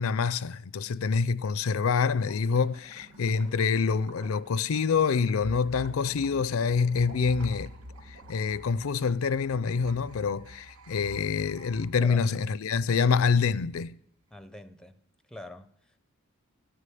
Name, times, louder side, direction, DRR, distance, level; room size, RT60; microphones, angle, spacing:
voice 1, 0.0-7.7 8.3-13.9, left 5 dB, 70° left, 0.4 m, -26 dB
Gurgling / Liquid, 2.0-9.8, right 2 dB, 60° right, 2.3 m, -53 dB
sound 1, 5.4-12.9, equal, 80° right, 0.7 m, -46 dB
voice 2, 12.0-12.4 14.3-15.0 15.3-16.0, left 2 dB, 5° left, 0.5 m, -45 dB
14.5 x 6.6 x 9.2 m
head